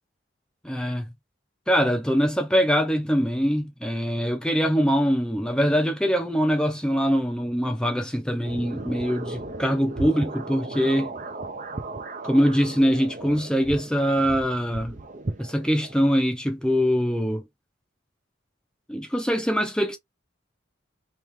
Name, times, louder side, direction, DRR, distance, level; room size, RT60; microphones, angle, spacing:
voice 1, 0.6-1.0 1.7-11.1 12.2-15.0 15.4-17.4 18.9-20.0, equal, 5° left, 0.6 m, -23 dB
sound 1, 8.4-16.0, right 2 dB, 40° right, 0.6 m, -36 dB
3.2 x 3.0 x 3.4 m
head